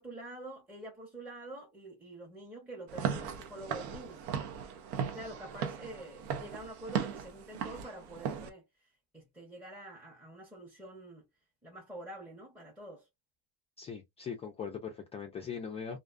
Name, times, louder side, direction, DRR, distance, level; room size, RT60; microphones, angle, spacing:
voice 1, 0.0-4.3 5.0-8.7 9.1-11.3 11.6-13.1, right 1 dB, 5° right, 0.7 m, -47 dB
Walk footsteps / Siren, 2.9-8.5, right 7 dB, 80° right, 0.7 m, -37 dB
voice 2, 13.8-16.0, left 6 dB, 20° left, 0.3 m, -40 dB
2.4 x 2.3 x 2.3 m
supercardioid pair, 135°, 34 cm